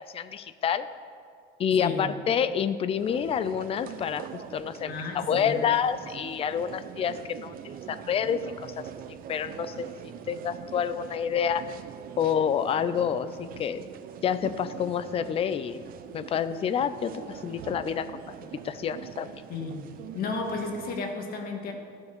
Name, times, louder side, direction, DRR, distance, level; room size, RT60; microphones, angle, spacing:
voice 1, 0.1-0.9 1.6-8.4 8.8-8.9 9.3-9.9 10.3-11.6 12.2-13.8 14.2-15.8 16.1-18.1 18.4-19.3, left 8 dB, 30° left, 13 dB, 0.5 m, -28 dB
voice 2, 1.8-2.1 4.8-5.6 19.5-19.8 20.1-21.7, left 3 dB, 50° left, 3 dB, 1.7 m, -33 dB
sound 1, 3.0-21.0, right 9 dB, 50° right, 0.6 m, -43 dB
14.0 x 7.0 x 6.7 m, 2.3 s
cardioid pair, 160°, 20 cm